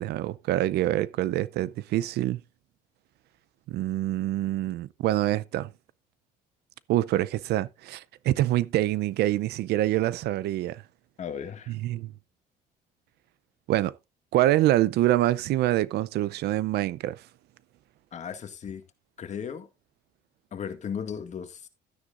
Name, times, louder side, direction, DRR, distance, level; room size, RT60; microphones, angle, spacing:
voice 1, 0.0-2.4 3.7-5.7 6.9-10.8 11.7-12.1 13.7-13.9 14.3-17.2, right 15 dB, 75° right, 0.6 m, -25 dB
voice 2, 11.2-11.7 18.1-18.8 19.2-19.7 20.5-21.7, left 7 dB, 45° left, 2.0 m, -36 dB
12.5 x 9.9 x 2.5 m
cardioid pair, 110°, 17 cm